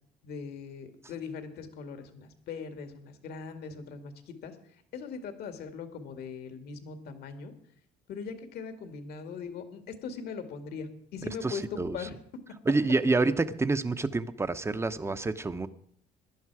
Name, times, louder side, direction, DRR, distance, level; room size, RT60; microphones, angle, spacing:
voice 1, 0.2-4.6 4.9-7.5 8.1-12.2, left 5 dB, 70° left, 7 dB, 2.1 m, -40 dB
voice 2, 11.4-12.0 12.7-15.7, right 3 dB, 15° right, 12 dB, 0.8 m, -28 dB
17.5 x 11.5 x 4.8 m, 0.66 s
cardioid pair, 110°, 17 cm